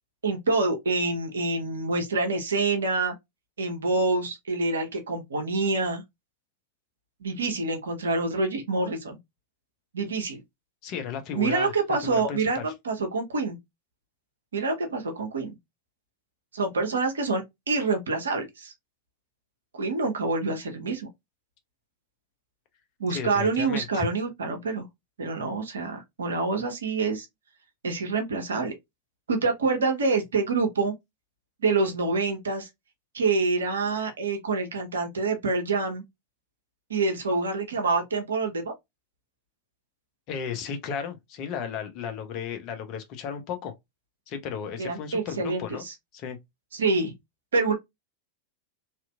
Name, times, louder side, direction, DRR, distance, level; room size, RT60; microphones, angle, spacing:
voice 1, 0.2-3.1 3.6-6.0 7.2-9.2 9.9-10.4 11.3-13.6 14.5-15.5 16.5-18.7 19.7-21.1 23.0-24.8 25.2-27.3 27.8-28.7 29.3-30.9 31.6-32.7 33.1-36.0 36.9-38.7 44.8-45.9 46.7-47.1 47.5-47.7, right 3 dB, 70° right, 0.8 m, -26 dB
voice 2, 10.8-11.7 12.0-12.7 23.1-24.1 40.3-43.7 44.3-45.8 46.1-46.4, left 7 dB, 40° left, 0.7 m, -34 dB
2.9 x 2.5 x 2.2 m
figure-of-eight pair, 90°, 0 cm